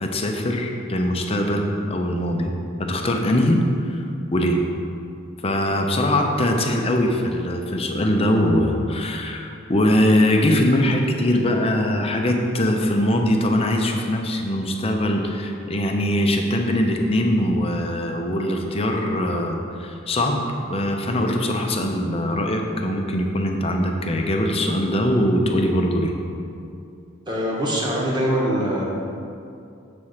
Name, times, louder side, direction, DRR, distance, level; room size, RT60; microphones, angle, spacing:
voice 1, 0.0-2.5 2.8-4.6 5.4-20.4 20.7-26.1, left 1 dB, 30° left, 2 dB, 0.7 m, -22 dB
voice 2, 27.3-28.8, equal, 20° right, -3 dB, 1.3 m, -23 dB
7.4 x 4.3 x 6.5 m, 2.5 s
head